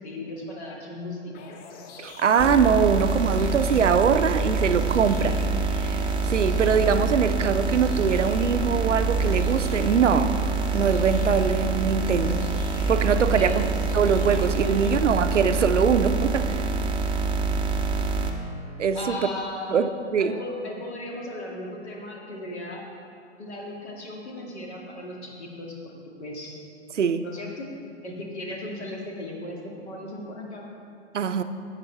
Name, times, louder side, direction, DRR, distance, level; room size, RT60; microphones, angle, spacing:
voice 1, 0.0-1.3 13.4-13.6 14.3-14.4 14.8-14.9 18.9-19.8 20.2-22.8 23.4-25.9 26.2-26.6 27.2-27.7 28.0-30.7, left 1 dB, 65° left, -2 dB, 2.2 m, -36 dB
sound 1, 1.3-15.0, left 5 dB, 25° left, 0.6 m, -46 dB
voice 2, 2.0-5.4 5.7-10.4 10.7-12.4 12.9-13.7 13.9-16.6 18.8-19.2 19.7-20.4 26.9-27.2 31.1-31.4, right 6 dB, 85° right, 10 dB, 0.6 m, -22 dB
sound 2, 2.4-18.3, right 4 dB, 15° right, 0.6 m, -26 dB
13.0 x 8.1 x 3.3 m, 2.5 s
figure-of-eight pair, 105°, 35 cm